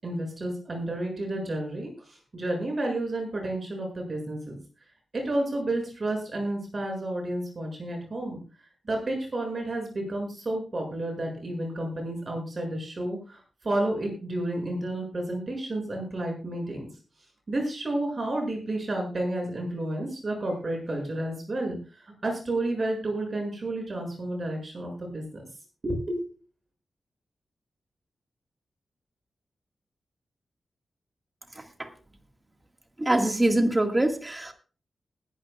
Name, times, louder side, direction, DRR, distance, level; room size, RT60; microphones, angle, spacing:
voice 1, 0.0-4.6 5.1-8.4 8.8-16.9 17.5-21.8 22.0-25.4 25.8-26.2, right 1 dB, 35° right, 2 dB, 6.9 m, -31 dB
voice 2, 33.0-34.5, right 1 dB, 15° right, 5 dB, 1.8 m, -24 dB
20.0 x 12.5 x 2.4 m, 0.35 s
wide cardioid pair, 140°, 0 cm